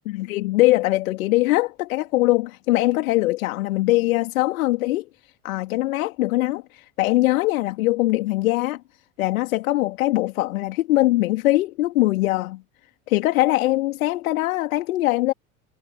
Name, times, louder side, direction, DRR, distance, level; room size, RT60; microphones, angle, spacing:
voice 1, 0.1-8.8 9.2-12.6 13.1-15.3, left 18 dB, 60° left, 3.7 m, -22 dB
figure-of-eight pair, 75°, 45 cm